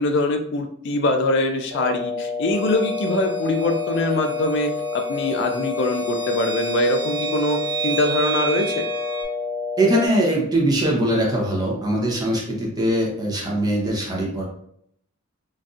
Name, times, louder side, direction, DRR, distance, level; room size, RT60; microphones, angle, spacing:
voice 1, 0.0-8.9, left 1 dB, 55° left, 6 dB, 0.3 m, -23 dB
sound 1, 1.7-10.1, left 4 dB, 85° right, 1.2 m, -28 dB
sound 2, 2.5-9.2, right 5 dB, 10° left, 1.2 m, -32 dB
voice 2, 9.8-14.4, right 1 dB, 20° right, -2 dB, 0.7 m, -21 dB
3.8 x 2.6 x 2.4 m, 0.71 s
head